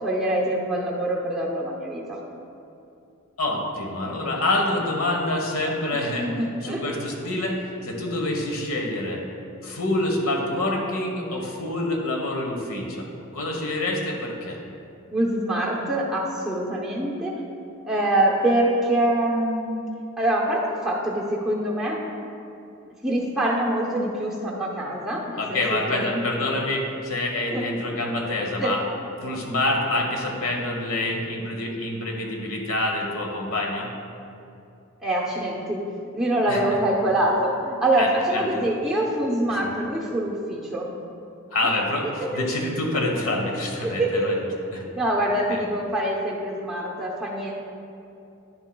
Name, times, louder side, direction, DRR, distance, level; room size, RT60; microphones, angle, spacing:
voice 1, 0.0-2.2 5.9-6.8 15.1-17.3 17.8-19.9 20.2-22.0 23.0-26.1 27.5-27.6 28.6-28.8 35.0-35.8 36.1-40.9 42.2-42.3 43.8-44.3 44.8-47.5, right 1 dB, ahead, -4 dB, 0.8 m, -24 dB
voice 2, 3.4-6.3 6.6-9.2 9.6-13.1 13.3-14.6 25.4-28.8 29.2-33.9 36.5-36.6 38.0-38.6 39.5-39.6 41.5-44.4 44.7-44.8 45.5-45.6, left 2 dB, 75° left, 0 dB, 1.2 m, -26 dB
9.9 x 7.1 x 2.3 m, 2.7 s
head